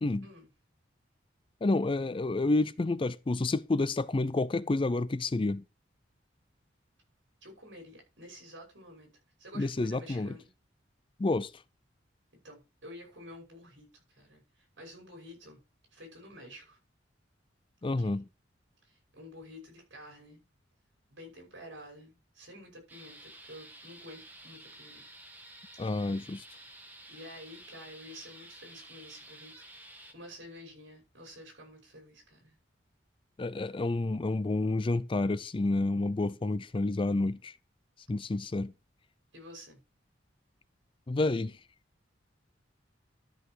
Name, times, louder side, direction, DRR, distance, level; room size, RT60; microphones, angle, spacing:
voice 1, 1.6-5.6 9.5-10.3 11.2-11.5 17.8-18.3 25.8-26.4 33.4-37.5 38.1-38.7 41.1-41.6, left 2 dB, 25° left, 0.4 m, -29 dB
voice 2, 7.4-9.1 9.4-10.5 12.4-15.6 15.9-16.8 17.8-18.3 18.8-20.4 21.1-25.0 27.1-29.6 29.9-32.5 39.3-39.8, equal, 75° right, 5.8 m, -50 dB
sound 1, 22.9-30.1, right 1 dB, 10° right, 1.4 m, -51 dB
12.5 x 5.7 x 4.5 m
head